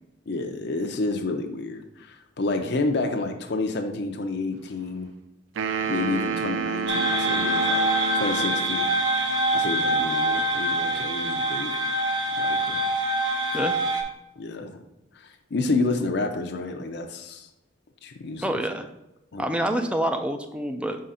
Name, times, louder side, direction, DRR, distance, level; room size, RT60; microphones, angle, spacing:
voice 1, 0.3-5.1 5.9-7.9 8.1-8.9 9.5-11.7 12.3-12.8 13.6-13.7 14.4-14.8 15.1-17.5 18.0-18.6 19.3-19.4, left 3 dB, 60° left, 5 dB, 0.6 m, -29 dB
sound 1, 5.6-8.9, right 6 dB, 80° right, 0.4 m, -29 dB
sound 2, 6.9-14.0, right 1 dB, 60° right, 0.9 m, -25 dB
voice 2, 18.4-18.9 19.4-21.0, right 1 dB, 5° right, 6 dB, 0.4 m, -27 dB
5.0 x 3.8 x 5.6 m, 0.92 s
head